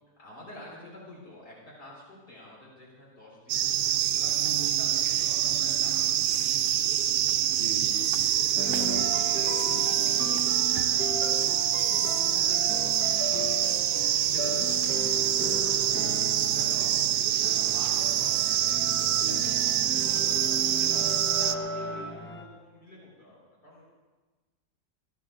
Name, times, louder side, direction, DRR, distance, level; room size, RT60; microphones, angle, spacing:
voice 1, 0.2-7.3 8.6-13.6 14.3-23.9, left 1 dB, 85° left, -5 dB, 5.3 m, -48 dB
sound 1, 3.5-21.5, right 11 dB, 85° right, 1.2 m, -26 dB
voice 2, 7.5-8.3 16.8-16.9 19.2-19.4, equal, 50° left, -6 dB, 5.8 m, -41 dB
sound 2, 8.6-22.4, equal, 10° left, 0.8 m, -36 dB
24.0 x 16.0 x 2.6 m, 1.3 s
omnidirectional pair, 1.7 m